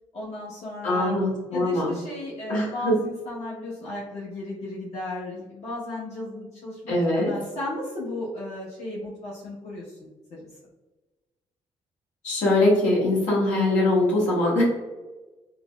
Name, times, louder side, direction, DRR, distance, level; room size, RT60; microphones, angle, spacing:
voice 1, 0.1-1.2 1.5-6.8 7.1-10.0 10.3-10.4, left 1 dB, 60° left, -8 dB, 1.1 m, -35 dB
voice 2, 0.8-1.9 2.5-2.9 6.9-7.3 12.2-14.6, left 2 dB, 80° left, -6 dB, 1.3 m, -22 dB
3.8 x 2.0 x 2.3 m, 1.2 s
supercardioid pair, 60°, 13 cm